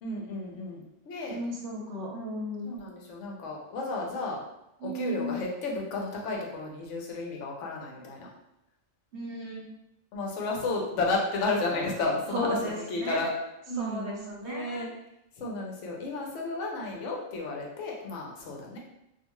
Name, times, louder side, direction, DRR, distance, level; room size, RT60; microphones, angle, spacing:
voice 1, 0.0-1.4 2.7-4.4 4.8-8.3 10.1-13.3 13.7-14.9 15.4-18.8, left 2 dB, 70° left, -1 dB, 0.9 m, -32 dB
voice 2, 1.3-2.7 4.8-5.4 9.1-9.7 12.3-13.3 13.8-14.9, equal, 60° right, -2 dB, 0.9 m, -35 dB
2.4 x 2.4 x 2.9 m, 0.86 s
omnidirectional pair, 1.4 m